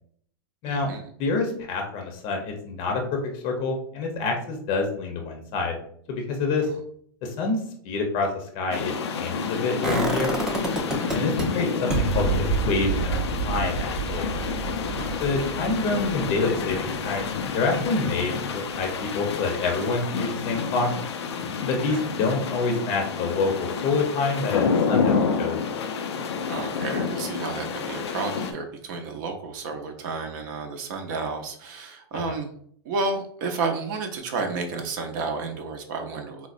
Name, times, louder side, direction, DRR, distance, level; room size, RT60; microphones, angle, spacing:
voice 1, 0.7-1.1 11.0-11.3 15.0-15.3 21.9-22.0 26.5-32.5 32.8-36.5, right 4 dB, 50° right, 4 dB, 0.6 m, -31 dB
voice 2, 1.2-5.8 6.1-6.7 7.2-7.6 7.8-10.4 11.1-13.1 13.4-14.3 15.2-18.9 19.1-20.9 21.7-25.6 32.2-32.3, left 3 dB, 40° left, 3 dB, 0.6 m, -27 dB
sound 1, 8.7-28.5, left 5 dB, 85° left, 0.4 m, -29 dB
sound 2, 9.8-11.4 11.9-17.7 18.1-18.2, right 3 dB, 5° right, 0.5 m, -28 dB
4.1 x 2.0 x 2.4 m, 0.63 s
hypercardioid pair, 130°, 14 cm